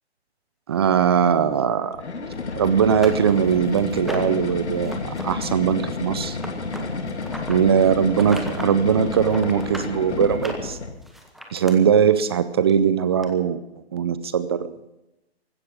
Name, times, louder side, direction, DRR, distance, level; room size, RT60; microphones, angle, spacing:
voice 1, 0.7-2.0 2.6-6.4 7.5-10.8 11.5-13.6 13.9-14.7, right 7 dB, 25° right, 14 dB, 0.6 m, -20 dB
sound 1, 1.9-11.0, left 4 dB, 85° left, 2.8 m, -30 dB
sound 2, 2.3-2.4 2.9-4.4 4.8-5.2 5.5-7.6 8.1-8.7 9.0-9.9 10.3-11.7 12.7-12.8 13.2-13.3, equal, ahead, 1.1 m, -36 dB
16.0 x 13.0 x 6.2 m, 0.92 s
hypercardioid pair, 155°, 33 cm